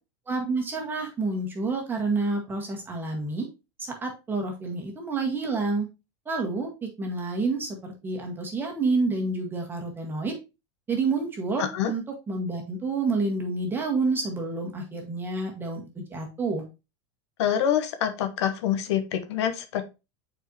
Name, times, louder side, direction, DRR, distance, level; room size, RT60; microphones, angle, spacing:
voice 1, 0.3-3.5 4.0-5.8 6.2-6.7 7.0-10.3 10.9-16.6, right 3 dB, 15° right, 1 dB, 1.7 m, -28 dB
voice 2, 11.6-11.9 17.4-19.8, left 9 dB, 75° left, 8 dB, 1.0 m, -26 dB
8.1 x 4.6 x 2.9 m, 0.27 s
supercardioid pair, 155°, 14 cm